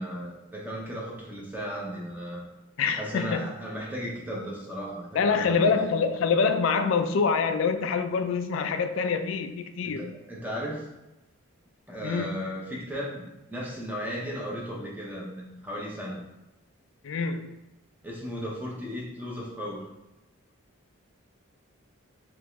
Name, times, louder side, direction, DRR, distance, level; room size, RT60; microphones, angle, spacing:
voice 1, 0.0-2.4 2.9-5.9 9.8-10.9 11.9-16.2 18.0-19.9, equal, 10° right, -3 dB, 0.6 m, -35 dB
voice 2, 2.8-3.5 5.1-10.1 12.0-12.4 17.0-17.5, left 5 dB, 65° left, 8 dB, 0.3 m, -26 dB
3.4 x 2.9 x 3.1 m, 0.98 s
head